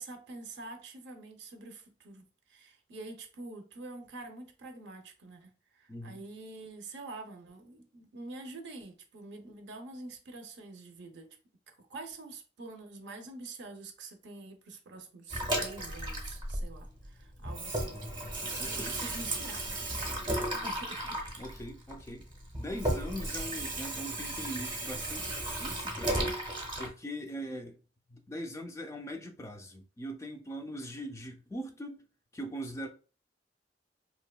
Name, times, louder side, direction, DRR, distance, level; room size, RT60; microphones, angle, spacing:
voice 1, 0.0-11.3 11.8-21.5, right 3 dB, 70° right, 0.5 m, -46 dB
voice 2, 5.9-6.3 17.9-18.0 18.6-19.0 21.4-22.3 22.6-26.4 26.8-27.8 28.1-32.0 32.3-32.9, equal, 15° left, 0.3 m, -41 dB
Water tap faucet / Sink (filling or washing), 15.3-17.1 17.4-26.9, right 1 dB, 25° right, 0.6 m, -35 dB
2.7 x 2.2 x 2.2 m
head